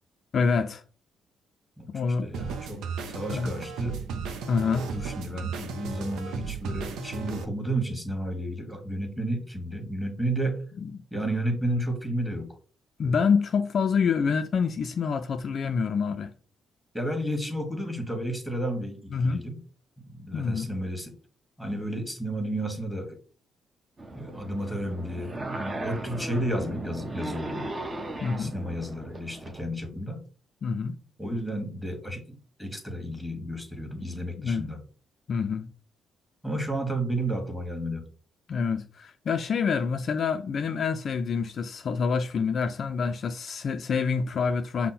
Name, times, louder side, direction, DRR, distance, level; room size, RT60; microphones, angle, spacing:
voice 1, 0.3-0.8 1.9-2.3 3.3-3.5 4.5-4.9 10.8-10.9 13.0-16.3 19.1-19.4 20.3-20.7 28.2-28.5 30.6-31.0 34.4-34.7 35.3-35.7 38.5-44.9, left 5 dB, 55° left, 0.4 m, -27 dB
voice 2, 1.8-4.0 4.6-10.6 11.1-12.6 13.0-13.1 16.9-19.6 20.1-21.1 21.6-23.2 24.1-27.7 28.3-30.2 31.2-34.8 36.4-38.0, right 1 dB, ahead, 1.4 m, -32 dB
sound 1, 2.3-7.4, right 5 dB, 85° right, 0.6 m, -35 dB
sound 2, 24.0-29.6, right 2 dB, 30° right, 0.9 m, -37 dB
5.4 x 2.1 x 4.2 m
cardioid pair, 90°, 0 cm